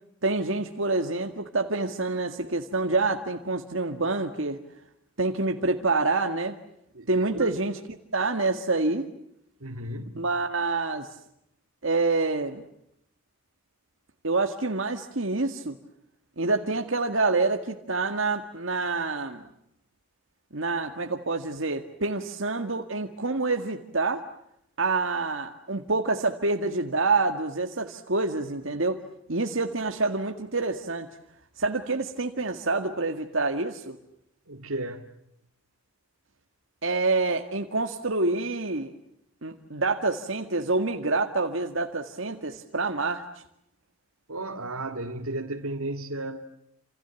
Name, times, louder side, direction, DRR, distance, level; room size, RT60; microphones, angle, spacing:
voice 1, 0.2-4.6 5.2-6.6 7.1-7.8 8.1-9.1 10.2-11.1 11.8-12.6 14.2-15.8 16.4-19.4 20.5-24.2 24.8-29.0 29.3-31.1 31.6-34.0 36.8-38.9 39.4-43.2, right 3 dB, 65° right, 1.9 m, -27 dB
voice 2, 6.9-7.6 9.6-10.3 34.5-35.1 44.3-46.5, right 2 dB, 90° right, 2.1 m, -34 dB
29.5 x 28.5 x 7.1 m
head